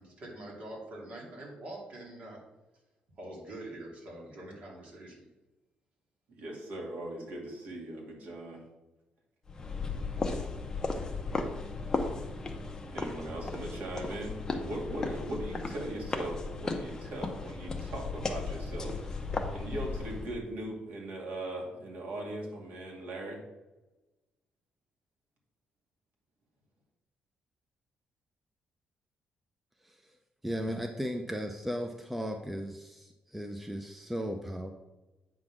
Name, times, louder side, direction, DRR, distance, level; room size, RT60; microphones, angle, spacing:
voice 1, 0.0-2.4 3.2-5.3, right 1 dB, 45° right, -3 dB, 2.7 m, -44 dB
voice 2, 6.4-8.6 12.9-23.4, right 1 dB, 65° right, -1 dB, 2.3 m, -39 dB
sound 1, 9.5-20.4, left 3 dB, 20° left, 0.8 m, -35 dB
voice 3, 30.4-34.7, equal, 5° right, 4 dB, 0.5 m, -36 dB
8.7 x 3.8 x 6.0 m, 1.1 s
cardioid pair, 145°, 3 cm